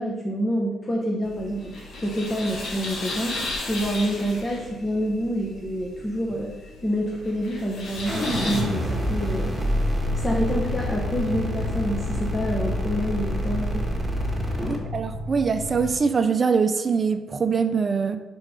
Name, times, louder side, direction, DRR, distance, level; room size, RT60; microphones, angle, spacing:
voice 1, 0.0-1.7 2.0-9.6 10.2-13.9 14.6-14.9, equal, 20° left, -1 dB, 1.0 m, -27 dB
sound 1, 1.2-8.6, left 2 dB, 65° left, 1.4 m, -35 dB
sound 2, 8.0-16.0, left 1 dB, 90° left, 1.3 m, -35 dB
sound 3, 8.1-14.8, equal, ahead, 1.5 m, -27 dB
voice 2, 14.7-18.2, right 5 dB, 35° right, 9 dB, 0.5 m, -23 dB
5.2 x 4.7 x 4.8 m, 1.1 s
cardioid pair, 90°, 0 cm